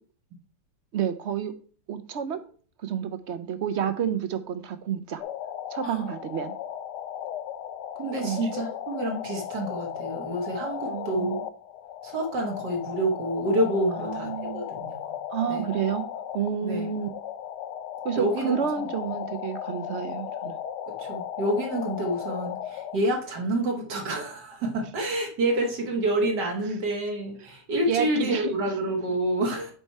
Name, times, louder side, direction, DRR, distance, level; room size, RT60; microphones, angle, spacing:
voice 1, 0.9-1.5 1.9-2.4 2.8-5.2 5.7-6.5 8.2-8.5 10.8-11.4 13.9-14.7 15.3-16.1 16.3-17.1 18.0-20.6 27.9-28.7, right 8 dB, 65° right, 10 dB, 0.7 m, -30 dB
sound 1, 5.2-23.0, left 9 dB, 85° left, 1.3 m, -36 dB
voice 2, 8.0-11.3 12.0-15.2 15.5-15.7 16.6-16.9 18.2-18.5 18.8-18.9 20.9-29.7, right 1 dB, 85° right, 1 dB, 2.0 m, -28 dB
8.9 x 4.2 x 4.6 m, 0.44 s
omnidirectional pair, 1.8 m